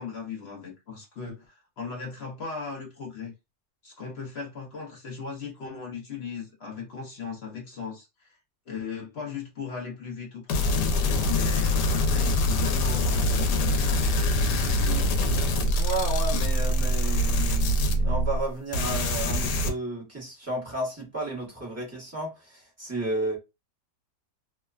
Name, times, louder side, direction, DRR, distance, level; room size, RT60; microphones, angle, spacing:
voice 1, 0.0-3.3 3.8-8.4 8.7-15.1, left 5 dB, 60° left, 0.6 m, -38 dB
sound 1, 10.5-18.4 18.7-19.7, left 1 dB, 85° left, 1.2 m, -24 dB
voice 2, 15.8-23.4, right 2 dB, 15° right, 0.7 m, -32 dB
3.0 x 2.1 x 2.3 m
omnidirectional pair, 1.7 m